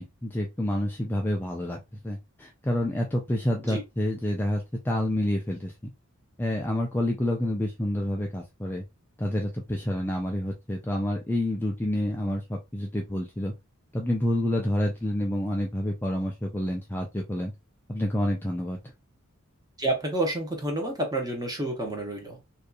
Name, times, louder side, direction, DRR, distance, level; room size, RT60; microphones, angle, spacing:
voice 1, 0.0-1.8 2.0-5.7 6.4-8.8 9.2-13.5 13.9-17.5 17.9-18.8, left 1 dB, 10° left, 0.4 m, -28 dB
voice 2, 19.8-22.4, right 1 dB, 20° right, 0.7 m, -29 dB
2.7 x 2.3 x 2.3 m
head